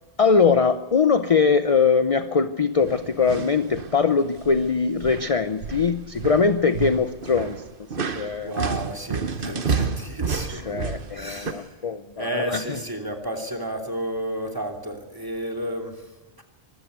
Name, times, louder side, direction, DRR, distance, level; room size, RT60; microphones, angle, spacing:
voice 1, 0.2-7.6 8.1-8.5 9.5-9.6 10.5-12.8, left 5 dB, 35° left, 10 dB, 0.7 m, -22 dB
sound 1, 2.8-4.0 4.3-4.7 5.0-11.5, right 5 dB, 55° right, 1.2 m, -30 dB
voice 2, 8.1-10.8 11.1-11.8 12.2-16.0 16.4-16.5, equal, 20° right, 3 dB, 2.8 m, -32 dB
24.5 x 15.0 x 8.1 m, 1.1 s
omnidirectional pair, 1.1 m